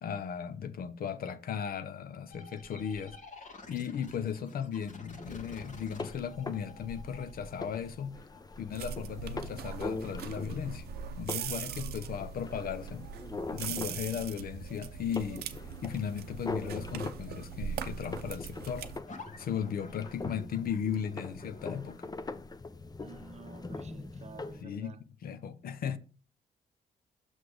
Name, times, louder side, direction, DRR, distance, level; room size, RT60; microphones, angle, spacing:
voice 1, 0.0-3.2 3.7-8.2 8.6-10.8 11.2-13.1 13.5-15.4 15.8-18.9 19.4-22.1 24.6-26.0, left 8 dB, 70° left, 0.7 m, -36 dB
sound 1, 2.3-11.7 19.1-21.9, left 2 dB, 50° left, 1.6 m, -50 dB
sound 2, 5.2-24.6, left 3 dB, 25° left, 0.6 m, -43 dB
sound 3, 8.7-19.0, right 8 dB, 90° right, 0.6 m, -41 dB
voice 2, 23.0-25.0, right 6 dB, 45° right, 0.7 m, -51 dB
6.3 x 6.0 x 3.3 m
cardioid pair, 70°, 16 cm